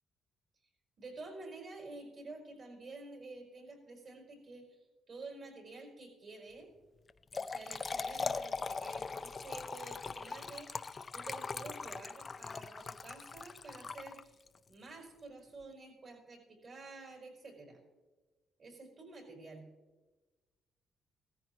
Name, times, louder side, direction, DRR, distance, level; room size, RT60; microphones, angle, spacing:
voice 1, 1.0-4.8 5.1-6.7 7.3-14.4 14.7-17.8 18.6-19.7, right 3 dB, 50° right, 1 dB, 4.7 m, -50 dB
Trickle dribble / Fill (with liquid), 7.1-14.6, left 4 dB, 35° left, 0.5 m, -40 dB
17.0 x 14.0 x 3.1 m, 1.2 s
cardioid pair, 90°, 0 cm